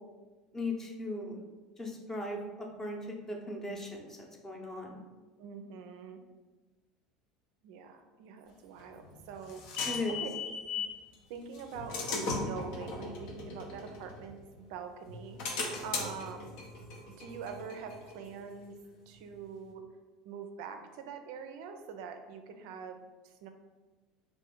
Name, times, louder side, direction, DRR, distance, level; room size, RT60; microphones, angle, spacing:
voice 1, 0.5-1.4 1.8-5.0 9.9-10.3, left 2 dB, 15° left, 0 dB, 0.8 m, -38 dB
voice 2, 5.4-6.2 7.6-9.6 10.1-10.3 10.7-10.9 11.3-15.4 15.8-16.6 17.2-18.8 19.1-19.8 20.2-23.0 23.2-23.5, right 6 dB, 60° right, 6 dB, 0.4 m, -44 dB
sound 1, 8.8-11.0 11.5-14.6 15.1-18.5, left 4 dB, 60° left, 0.7 m, -38 dB
3.3 x 2.5 x 3.6 m, 1.3 s
hypercardioid pair, 75°, 3 cm